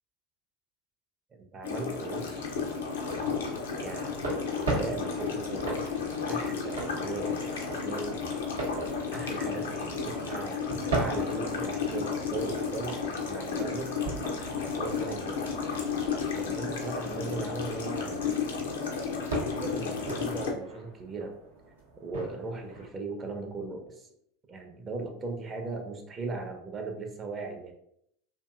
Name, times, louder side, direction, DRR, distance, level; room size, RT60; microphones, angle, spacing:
voice 1, 1.3-2.5 3.7-5.9 6.3-8.2 9.1-10.6 10.9-13.0 13.3-13.9 14.4-15.6 16.3-18.7 19.2-21.4 22.0-24.1 24.5-27.7, right 3 dB, 30° right, 4 dB, 0.5 m, -38 dB
sound 1, 1.6-20.5, left 5 dB, 75° left, 0.5 m, -33 dB
sound 2, 3.0-22.9, right 3 dB, 80° right, 0.7 m, -39 dB
2.6 x 2.6 x 2.3 m, 0.72 s
hypercardioid pair, 80°, 0 cm